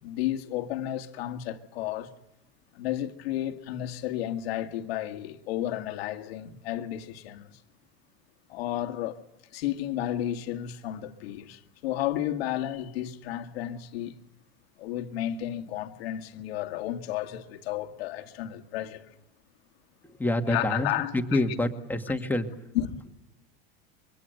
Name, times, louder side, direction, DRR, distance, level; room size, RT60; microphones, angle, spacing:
voice 1, 0.0-2.1 2.7-7.6 8.5-9.2 9.5-14.2 14.8-19.1 20.5-21.4 22.7-22.9, left 12 dB, 80° left, 2.2 m, -32 dB
voice 2, 20.0-22.5, left 1 dB, 5° left, 2.0 m, -27 dB
25.5 x 24.0 x 8.0 m
supercardioid pair, 135°, 30 cm